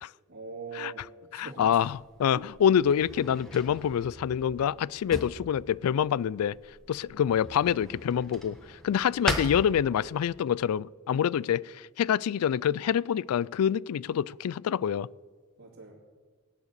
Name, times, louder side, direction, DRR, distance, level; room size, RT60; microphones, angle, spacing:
voice 1, 0.3-1.8 2.3-2.5 15.6-15.9, right 4 dB, 65° right, -6 dB, 2.8 m, -42 dB
voice 2, 1.3-6.6 6.9-15.1, left 8 dB, 90° left, 23 dB, 0.3 m, -26 dB
Drawer open or close, 1.6-10.4, equal, ahead, 1.2 m, -40 dB
18.0 x 9.9 x 6.7 m, 1.5 s
head